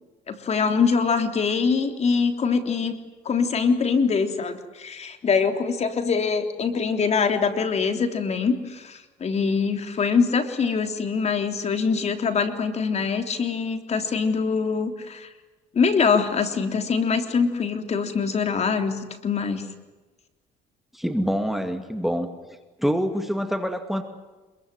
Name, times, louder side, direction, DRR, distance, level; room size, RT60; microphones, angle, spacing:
voice 1, 0.3-3.0 3.3-15.3 15.7-19.6, left 5 dB, 40° left, 7 dB, 3.5 m, -23 dB
voice 2, 20.9-22.3 22.8-24.0, equal, ahead, 7 dB, 2.3 m, -25 dB
26.5 x 22.5 x 9.3 m, 1.2 s
cardioid pair, 110°, 17 cm